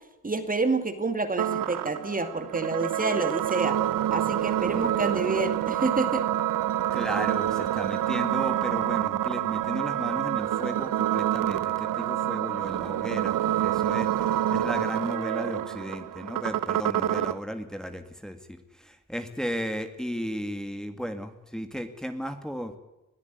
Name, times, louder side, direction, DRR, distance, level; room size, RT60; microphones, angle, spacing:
voice 1, 0.2-3.8 4.1-6.2, right 3 dB, 25° right, 8 dB, 2.2 m, -28 dB
sound 1, 1.4-17.4, right 12 dB, 70° right, 0.8 m, -27 dB
voice 2, 6.9-22.8, equal, ahead, 7 dB, 2.2 m, -35 dB
21.5 x 13.5 x 9.6 m, 0.97 s
cardioid pair, 95°, 34 cm